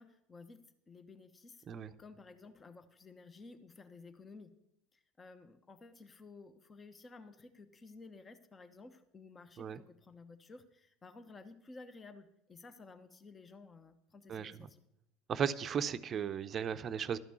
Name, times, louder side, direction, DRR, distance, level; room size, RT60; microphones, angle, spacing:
voice 1, 0.0-4.6 4.9-14.8, left 3 dB, 25° left, 10 dB, 1.0 m, -54 dB
voice 2, 15.3-17.2, right 7 dB, 40° right, 12 dB, 0.6 m, -35 dB
12.5 x 5.9 x 8.3 m, 0.77 s
hypercardioid pair, 80°, 0 cm